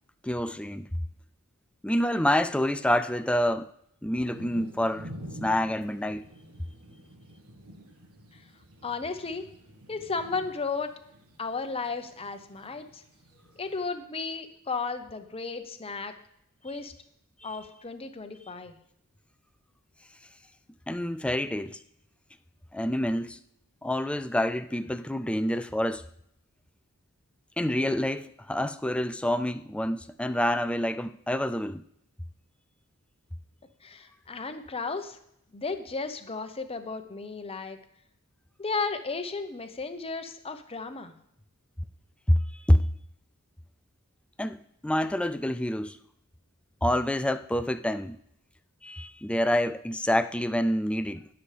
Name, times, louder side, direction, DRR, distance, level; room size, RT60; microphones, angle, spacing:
voice 1, 0.2-0.9 1.8-3.7 4.0-5.1 5.4-6.3 17.5-17.6 20.9-21.8 22.7-23.4 23.8-26.1 27.6-31.8 42.3-42.9 44.4-46.0 46.8-48.2 48.8-51.3, left 1 dB, 5° left, 0.3 m, -27 dB
sound 1, 4.3-13.9, equal, 75° right, 1.5 m, -48 dB
voice 2, 8.8-9.5 9.9-10.9 11.4-13.0 13.6-16.1 16.6-16.9 17.4-18.8 33.8-35.2 35.5-37.8 38.6-41.1, left 4 dB, 25° left, 0.8 m, -34 dB
20.0 x 7.0 x 3.4 m
head